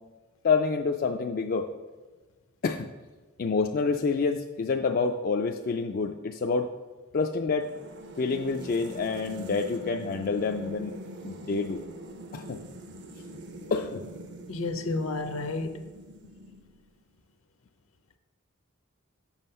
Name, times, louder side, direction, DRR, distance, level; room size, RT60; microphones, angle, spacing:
voice 1, 0.4-1.7 2.6-2.9 3.4-6.7 7.1-7.7 8.2-10.9 11.2-11.8 12.3-12.6 13.3-13.4 13.7-14.0, left 4 dB, 40° left, 3 dB, 0.4 m, -27 dB
sound 1, 7.6-16.9, right 1 dB, 55° right, 0.7 m, -43 dB
voice 2, 14.5-15.8, left 2 dB, 65° left, 8 dB, 0.7 m, -31 dB
7.3 x 5.9 x 5.4 m, 1.3 s
head